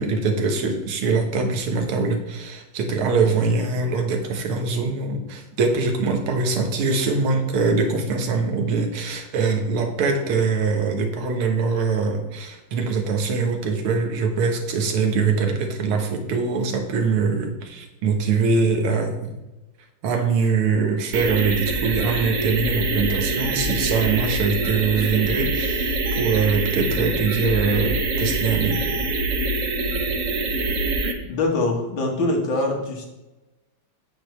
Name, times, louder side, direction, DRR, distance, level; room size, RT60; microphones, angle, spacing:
voice 1, 0.0-19.4 20.0-28.8, right 4 dB, 90° right, 4 dB, 1.9 m, -23 dB
sound 1, 21.1-31.1, right 2 dB, 55° right, 0.9 m, -24 dB
voice 2, 31.3-33.1, left 2 dB, 65° left, 0 dB, 2.0 m, -23 dB
8.6 x 6.4 x 3.1 m, 1.0 s
omnidirectional pair, 2.3 m